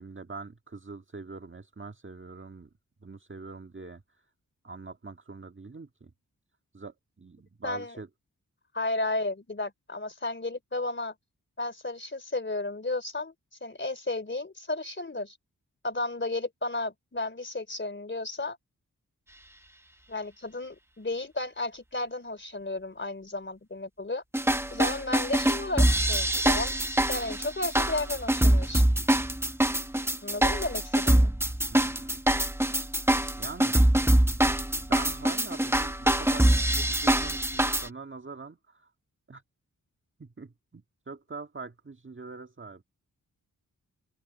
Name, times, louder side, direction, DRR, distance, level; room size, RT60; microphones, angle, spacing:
voice 1, 0.0-2.7 3.0-4.0 4.6-6.1 6.7-8.1 31.7-32.2 33.4-33.8 34.8-38.9 39.3-39.4 40.2-42.8, right 4 dB, 35° right, 1.8 m, -43 dB
voice 2, 7.6-8.0 8.7-11.1 11.6-13.3 13.6-15.4 15.8-18.6 20.1-24.2 24.7-26.7 27.1-28.9 30.2-31.3, left 2 dB, 35° left, 3.4 m, -33 dB
sound 1, 24.3-37.9, right 1 dB, 5° right, 1.1 m, -24 dB
cardioid pair, 50°, 34 cm